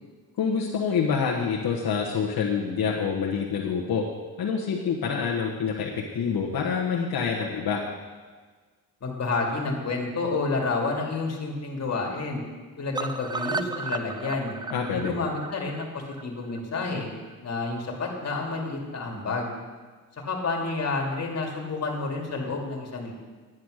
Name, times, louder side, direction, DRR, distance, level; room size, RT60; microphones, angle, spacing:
voice 1, 0.4-4.0 4.4-7.8 14.7-15.1, left 6 dB, 70° left, -2 dB, 1.4 m, -26 dB
voice 2, 9.0-12.4 12.8-14.6 14.9-17.1 17.4-19.5 20.3-23.1, left 3 dB, 45° left, 0 dB, 2.5 m, -29 dB
sound 1, 12.9-17.0 17.3-17.4 17.7-17.8 18.1-18.2, right 3 dB, 15° right, 0.3 m, -34 dB
10.5 x 9.3 x 6.5 m, 1.4 s
cardioid pair, 125°, 37 cm